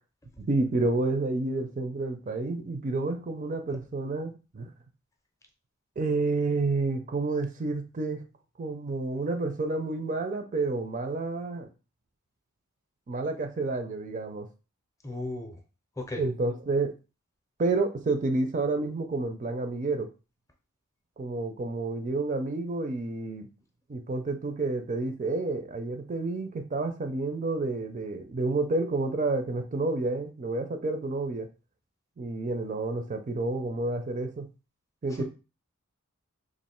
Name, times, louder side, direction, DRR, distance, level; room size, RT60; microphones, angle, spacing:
voice 1, 0.4-4.7 6.0-8.2 8.6-11.7 13.1-14.5 16.2-16.9 17.6-20.1 21.2-23.5 23.9-31.5 32.2-34.5 35.0-35.2, right 3 dB, 35° right, 7 dB, 0.4 m, -29 dB
voice 2, 15.0-15.6 16.0-16.2 35.2-35.3, left 2 dB, 15° left, 3 dB, 0.5 m, -35 dB
3.1 x 2.5 x 4.3 m, 0.32 s
head